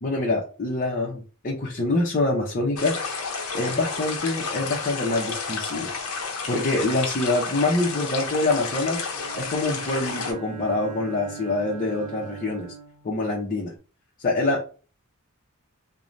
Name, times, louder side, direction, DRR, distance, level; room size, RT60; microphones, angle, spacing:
voice 1, 0.0-2.9 3.3-5.9 6.5-9.0 9.4-12.7 13.0-13.7 14.2-14.6, left 2 dB, 40° left, -4 dB, 0.6 m, -25 dB
sound 1, 2.8-10.3, left 5 dB, 80° left, 0.7 m, -31 dB
Bowed string instrument, 9.1-13.7, right 7 dB, 90° right, 0.6 m, -41 dB
3.1 x 2.1 x 2.5 m, 0.36 s
head